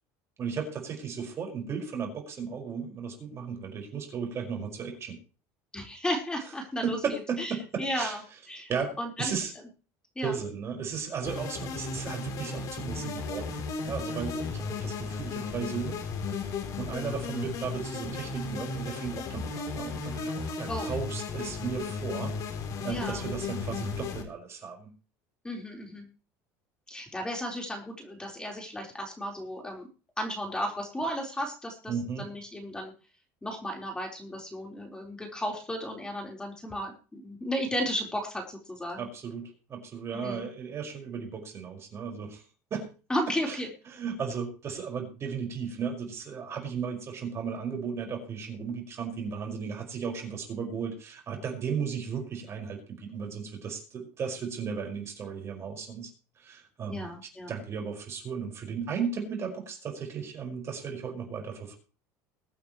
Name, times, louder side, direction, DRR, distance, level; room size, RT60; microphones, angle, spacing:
voice 1, 0.4-5.2 6.8-8.2 8.7-9.5 10.2-16.0 16.3-22.3 22.8-24.9 31.9-32.3 39.0-42.4 42.7-42.9 43.5-43.6 43.9-57.1 57.5-61.8, right 6 dB, 35° right, 2 dB, 5.2 m, -35 dB
voice 2, 5.7-8.2 8.5-8.7 9.0-9.3 10.2-10.3 20.7-20.9 22.9-23.2 25.4-26.1 26.9-29.9 30.2-32.9 33.4-39.1 40.1-40.5 43.1-43.7 56.9-57.5, equal, 10° left, 0 dB, 4.0 m, -34 dB
sound 1, 11.3-24.2, left 4 dB, 50° left, 3.3 m, -35 dB
22.5 x 9.1 x 3.1 m, 0.35 s
cardioid pair, 125°, 8 cm